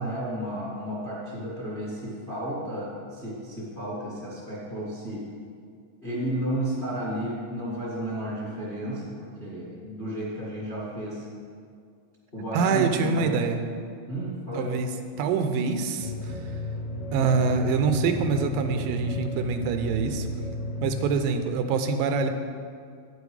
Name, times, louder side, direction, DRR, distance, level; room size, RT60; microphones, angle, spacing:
voice 1, 0.0-5.2 6.0-11.2 12.3-13.7 14.0-14.8, right 1 dB, 25° left, -7 dB, 1.1 m, -33 dB
voice 2, 12.5-13.6 14.5-14.9 15.2-16.3 17.1-20.3 20.8-22.3, right 5 dB, 85° right, 7 dB, 2.3 m, -25 dB
sound 1, 16.0-21.1, left 1 dB, 80° left, 2.9 m, -34 dB
9.8 x 7.1 x 4.8 m, 2.2 s
omnidirectional pair, 3.9 m